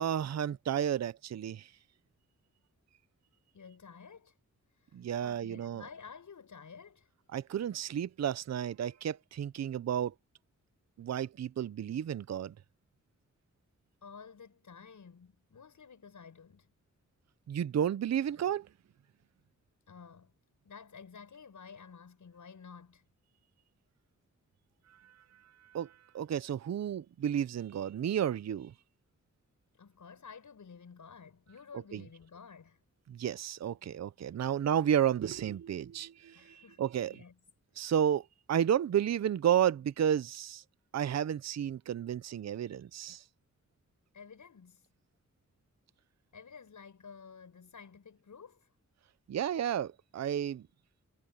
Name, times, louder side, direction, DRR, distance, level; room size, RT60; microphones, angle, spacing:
voice 1, 0.0-1.7 4.9-5.8 7.3-10.1 11.0-12.5 17.5-18.7 25.7-28.7 31.9-32.0 33.1-37.2 37.8-38.2 38.5-40.6 40.9-43.2 49.3-50.6, right 9 dB, 60° right, 0.5 m, -32 dB
voice 2, 3.5-4.4 4.7-7.1 14.0-16.7 19.9-20.3 20.6-23.1 29.7-32.8 36.3-37.4 37.9-38.0 44.1-44.9 46.3-48.7, left 6 dB, 80° left, 7.1 m, -52 dB
wide cardioid pair, 150°, 30 cm